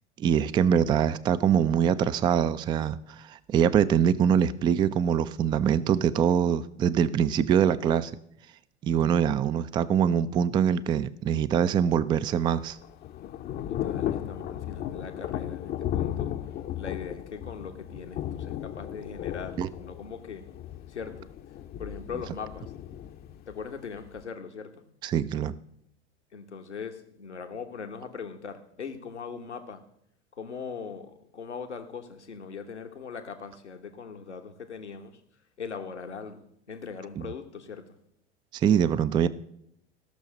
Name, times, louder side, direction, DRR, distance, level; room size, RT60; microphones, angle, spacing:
voice 1, 0.2-8.1 8.8-12.8 19.6-19.7 25.0-25.5 37.2-37.3 38.5-39.3, right 8 dB, 15° right, 16 dB, 0.3 m, -24 dB
Thunder / Rain, 12.3-24.2, left 11 dB, 30° left, 0.7 m, -35 dB
voice 2, 13.7-16.3 16.7-20.4 20.9-21.3 21.8-22.7 23.5-24.8 26.3-29.8 30.3-35.2 35.6-37.8, left 6 dB, 80° left, 6 dB, 1.3 m, -40 dB
15.5 x 6.4 x 6.2 m, 0.73 s
figure-of-eight pair, 85°, 34 cm